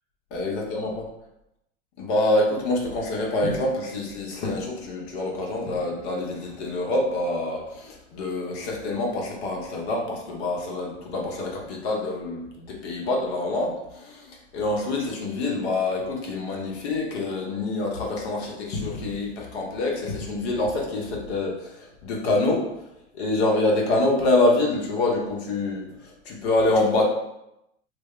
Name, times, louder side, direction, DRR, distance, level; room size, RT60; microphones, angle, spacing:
voice 1, 0.3-0.9 2.0-22.7 23.1-27.0, left 2 dB, 60° left, -1 dB, 0.9 m, -26 dB
2.2 x 2.1 x 3.6 m, 0.86 s
hypercardioid pair, 95°, 36 cm